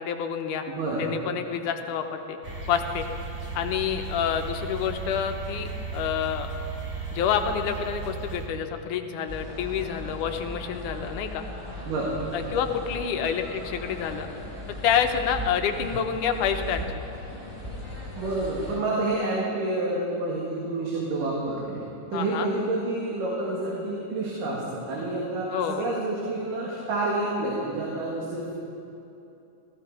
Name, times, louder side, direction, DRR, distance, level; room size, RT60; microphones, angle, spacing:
voice 1, 0.0-0.7 1.0-2.4 2.7-3.1 3.6-6.5 7.1-11.5 12.3-14.3 14.7-17.0 22.1-22.5 25.5-25.9, left 8 dB, 80° left, 6 dB, 2.2 m, -28 dB
voice 2, 0.7-1.0 11.9-12.1 12.4-12.6 18.2-21.8 22.1-28.5, right 2 dB, 85° right, -4 dB, 3.5 m, -29 dB
sound 1, 2.4-8.5, right 3 dB, 40° right, 0.8 m, -35 dB
sound 2, 9.3-18.8, left 1 dB, 10° right, 2.7 m, -38 dB
16.0 x 14.5 x 4.8 m, 2.9 s
omnidirectional pair, 3.8 m